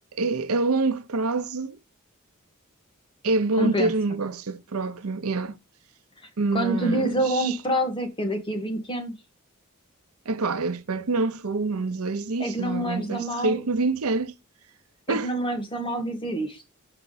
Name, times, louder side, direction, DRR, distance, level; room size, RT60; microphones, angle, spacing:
voice 1, 0.1-1.8 3.2-5.6 6.4-7.6 10.3-14.3 15.1-15.3, right 3 dB, 85° right, 0.7 m, -26 dB
voice 2, 3.6-3.9 6.5-9.1 12.4-13.6 15.1-16.6, right 1 dB, 25° left, 1.5 m, -27 dB
5.8 x 5.6 x 4.0 m
head